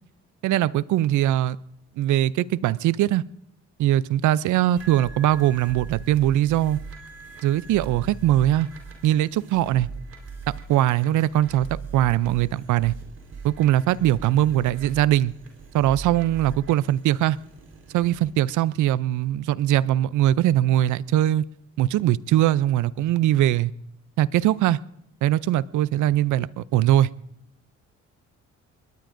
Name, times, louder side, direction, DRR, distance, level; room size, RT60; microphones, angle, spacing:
voice 1, 0.4-1.6 2.0-3.2 3.8-6.8 7.4-8.7 9.0-9.9 10.5-12.9 13.4-15.3 15.7-17.4 17.9-21.5 21.8-23.7 24.2-24.8 25.2-27.1, right 13 dB, 75° right, 19 dB, 0.5 m, -21 dB
sound 1, 4.8-18.3, right 5 dB, 50° right, 4.0 m, -40 dB
23.5 x 21.0 x 2.6 m, 0.78 s
cardioid pair, 90°, 30 cm